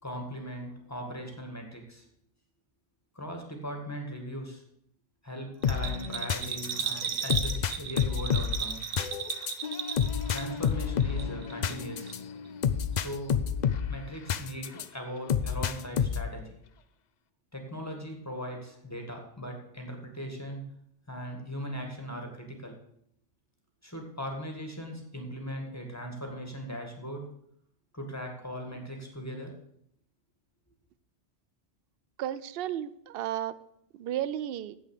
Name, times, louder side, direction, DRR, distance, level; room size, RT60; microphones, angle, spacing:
voice 1, 0.0-2.1 3.2-4.6 5.2-8.9 9.7-12.1 12.9-13.4 13.8-16.6 17.5-20.6 21.1-22.8 23.8-27.3 27.9-29.5, equal, 15° left, 2 dB, 1.9 m, -39 dB
sound 1, 5.6-14.9 15.3-16.4, left 8 dB, 55° left, 0.5 m, -30 dB
Bell, 5.6-10.7 11.0-11.8 12.1-12.2, right 7 dB, 85° right, 1.2 m, -35 dB
voice 2, 32.2-33.6 34.0-34.8, right 11 dB, 60° right, 16 dB, 0.7 m, -33 dB
8.9 x 8.1 x 6.6 m, 0.71 s
omnidirectional pair, 1.2 m